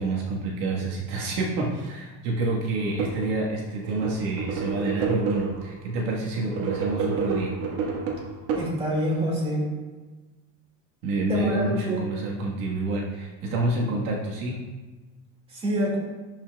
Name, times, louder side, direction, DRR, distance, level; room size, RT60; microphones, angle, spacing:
voice 1, 0.0-7.6 11.0-14.7, right 2 dB, 65° right, -3 dB, 1.5 m, -28 dB
sound 1, 2.8-3.3 3.8-5.7 6.4-9.1, right 5 dB, 85° right, 1.7 m, -29 dB
voice 2, 8.5-9.7 11.3-12.0 15.5-16.0, equal, 15° right, -4 dB, 2.1 m, -26 dB
10.5 x 5.7 x 2.3 m, 1.2 s
cardioid pair, 165°, 38 cm